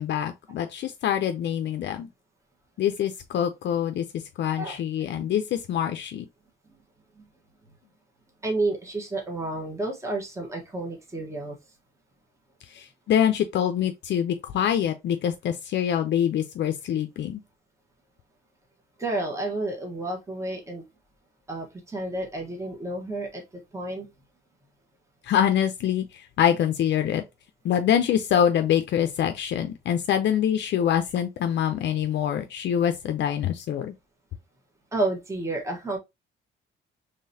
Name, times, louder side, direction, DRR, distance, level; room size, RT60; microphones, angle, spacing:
voice 1, 0.0-2.1 2.8-6.3 12.7-17.4 25.2-27.2 27.6-33.9, left 9 dB, 65° left, 0.5 m, -25 dB
voice 2, 8.4-11.5 19.0-20.8 21.5-23.4 23.7-24.1 34.9-36.0, right 2 dB, 15° right, 1.1 m, -30 dB
3.8 x 3.3 x 2.6 m
cardioid pair, 90°, 20 cm